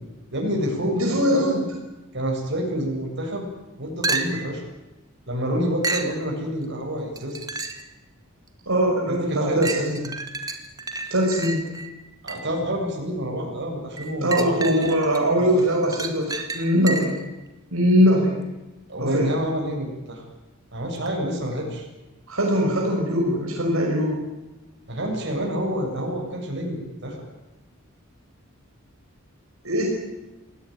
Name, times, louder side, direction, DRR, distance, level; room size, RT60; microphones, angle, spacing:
voice 1, 0.3-1.5 2.1-3.5 3.8-4.6 5.3-7.7 9.1-9.9 12.2-14.9 15.2-15.6 18.9-20.2 20.7-21.9 24.9-27.2, equal, 55° right, 1 dB, 7.7 m, -28 dB
voice 2, 0.9-1.6 8.7-10.1 11.1-11.6 14.2-17.2 17.7-18.4 19.0-19.3 22.3-24.2 29.6-29.9, equal, 80° right, -1 dB, 5.9 m, -21 dB
sound 1, 4.0-4.6 5.8-6.2 7.2-7.9 8.5-8.6 9.6-12.6 14.0-15.2 15.6-17.3 21.1-21.2, right 3 dB, 20° right, 2.1 m, -31 dB
27.5 x 18.0 x 9.5 m, 1.1 s
head